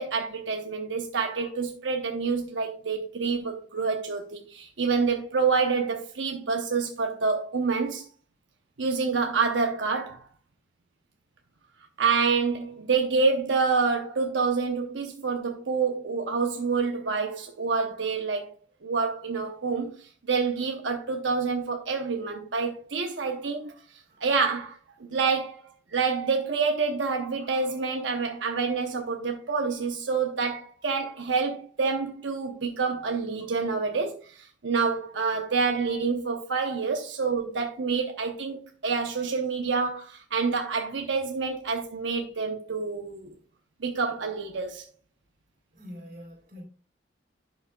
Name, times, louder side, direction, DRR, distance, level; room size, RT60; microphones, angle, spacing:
voice 1, 0.0-8.1 8.8-10.2 12.0-18.5 18.8-19.9 20.3-23.7 24.2-24.8 25.1-25.6 25.9-43.3 43.8-44.8, right 4 dB, 90° right, 0.9 m, -27 dB
voice 2, 45.7-46.6, equal, 50° right, 3.5 m, -44 dB
11.0 x 6.4 x 2.3 m
head